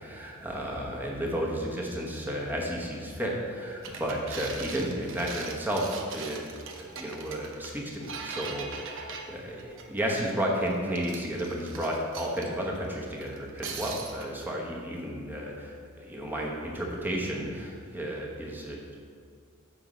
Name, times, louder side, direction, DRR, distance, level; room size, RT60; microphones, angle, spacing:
voice 1, 0.0-6.5 6.8-19.0, equal, 10° right, -2 dB, 1.1 m, -32 dB
Glass Steps, 3.8-10.2 10.7-12.5 13.2-14.3, right 5 dB, 60° right, 0.8 m, -41 dB
7.8 x 5.3 x 5.1 m, 2.1 s
head